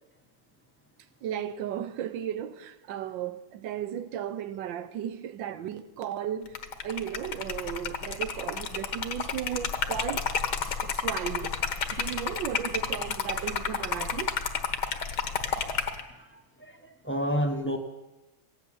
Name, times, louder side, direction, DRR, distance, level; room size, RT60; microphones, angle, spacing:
voice 1, 1.2-10.3 10.6-14.4, right 10 dB, 75° right, 1.4 m, -35 dB
Liquid, 6.5-16.0, left 6 dB, 60° left, 1.6 m, -31 dB
voice 2, 15.3-15.7 16.2-17.8, equal, 10° left, 0.7 m, -31 dB
15.5 x 8.3 x 9.9 m
omnidirectional pair, 2.2 m